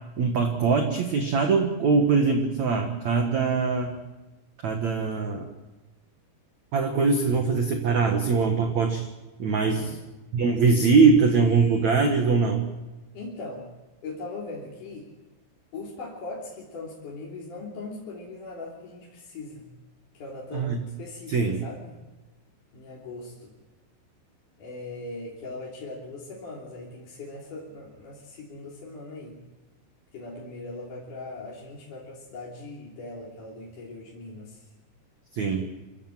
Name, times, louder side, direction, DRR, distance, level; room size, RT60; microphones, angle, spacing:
voice 1, 0.2-3.9 4.6-5.5 6.7-9.1 9.4-9.9 10.3-12.6 20.5-20.8 21.3-21.6 35.4-35.7, right 4 dB, 60° right, 4 dB, 2.0 m, -22 dB
voice 2, 9.6-10.0 13.1-13.7 14.0-15.1 15.7-19.6 20.1-20.7 21.0-22.0 22.7-23.5 24.6-29.4 30.1-34.6, left 2 dB, 45° left, -4 dB, 4.4 m, -40 dB
27.0 x 15.5 x 7.5 m, 1.1 s
omnidirectional pair, 5.3 m